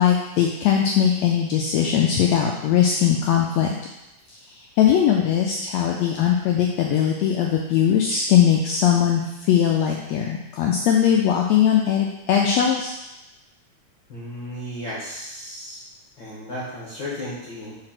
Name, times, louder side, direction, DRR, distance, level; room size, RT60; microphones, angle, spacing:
voice 1, 0.0-3.7 4.3-4.4 4.8-12.9, left 9 dB, 90° left, 0 dB, 1.5 m, -20 dB
voice 2, 14.1-15.8 16.2-17.7, left 1 dB, 45° left, -9 dB, 1.8 m, -34 dB
4.8 x 4.4 x 5.8 m, 0.94 s
omnidirectional pair, 3.7 m